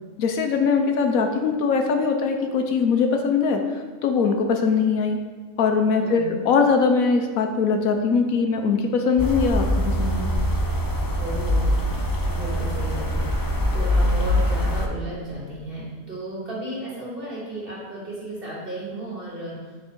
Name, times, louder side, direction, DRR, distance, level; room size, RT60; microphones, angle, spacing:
voice 1, 0.2-5.2 5.6-10.3, left 5 dB, 75° left, 5 dB, 1.2 m, -21 dB
voice 2, 6.0-6.4 11.2-11.7 12.2-19.5, right 1 dB, 40° right, -7 dB, 3.0 m, -34 dB
sound 1, 9.2-14.9, equal, 25° left, 0.5 m, -23 dB
8.9 x 4.5 x 5.2 m, 1.5 s
omnidirectional pair, 1.5 m